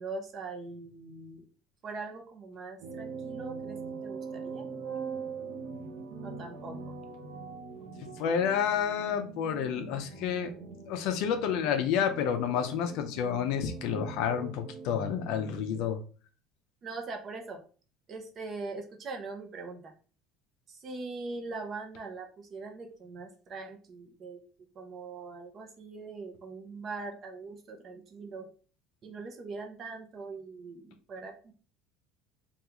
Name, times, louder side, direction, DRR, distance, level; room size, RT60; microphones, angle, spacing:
voice 1, 0.0-1.4 1.8-4.7 6.2-6.9 16.8-17.6 18.1-19.9 20.7-24.4 24.7-28.5 29.0-31.5, right 3 dB, 30° right, 3 dB, 0.6 m, -41 dB
sound 1, 2.8-15.8, right 5 dB, 75° right, 0.7 m, -42 dB
voice 2, 8.2-10.5 10.9-16.0, left 8 dB, 65° left, 7 dB, 0.5 m, -29 dB
3.5 x 2.4 x 2.9 m, 0.39 s
cardioid pair, 155°, 0 cm